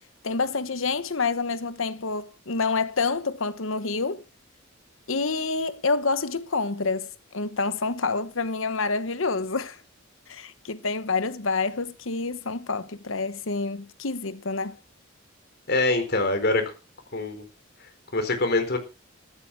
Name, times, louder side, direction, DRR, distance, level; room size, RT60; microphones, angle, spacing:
voice 1, 0.2-4.2 5.1-9.8 10.3-14.8, left 4 dB, 75° left, 1.2 m, -28 dB
voice 2, 15.7-16.6 17.1-17.4 18.1-18.8, left 2 dB, 55° left, 4.3 m, -24 dB
14.0 x 13.0 x 4.7 m
head